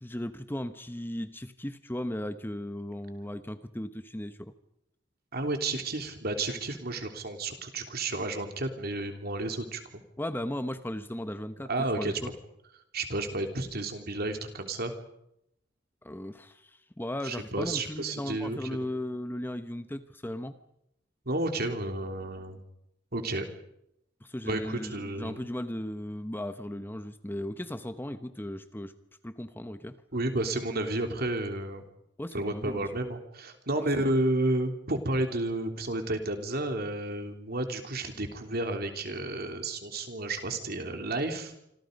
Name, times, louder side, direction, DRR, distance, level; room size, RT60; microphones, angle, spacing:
voice 1, 0.0-4.5 10.2-11.7 12.0-12.3 16.0-20.5 24.2-28.9 29.2-30.0 32.2-32.9 33.8-34.1, left 1 dB, 10° left, 10 dB, 1.0 m, -36 dB
voice 2, 5.3-9.8 11.7-12.3 12.9-14.9 17.2-18.9 21.2-22.6 23.1-23.4 24.5-25.4 30.1-31.8 32.3-41.5, right 2 dB, 55° right, 5 dB, 3.3 m, -31 dB
27.0 x 26.0 x 5.3 m, 0.78 s
head